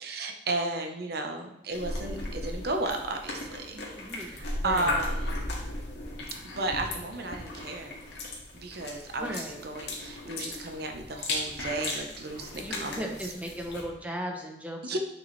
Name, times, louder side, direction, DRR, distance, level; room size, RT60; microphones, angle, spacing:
voice 1, 0.0-3.8 4.2-5.5 6.6-8.0 8.5-13.1 14.8-15.0, right 2 dB, 60° right, 4 dB, 0.9 m, -34 dB
sound 1, 1.7-13.8, left 2 dB, 60° left, 1.8 m, -36 dB
voice 2, 4.0-5.0 9.2-9.6 12.5-15.0, equal, 10° right, 1 dB, 0.9 m, -37 dB
9.5 x 5.4 x 3.2 m, 0.89 s
head